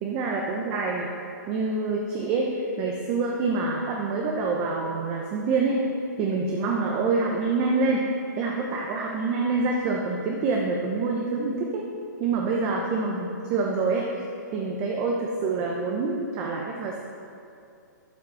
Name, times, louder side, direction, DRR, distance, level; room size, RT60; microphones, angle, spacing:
voice 1, 0.0-1.1 1.5-5.9 6.2-8.1 8.4-11.8 12.2-14.1 14.5-17.0, right 3 dB, 25° right, 0 dB, 0.9 m, -26 dB
12.5 x 5.8 x 6.3 m, 2.6 s
hypercardioid pair, 160°, 10 cm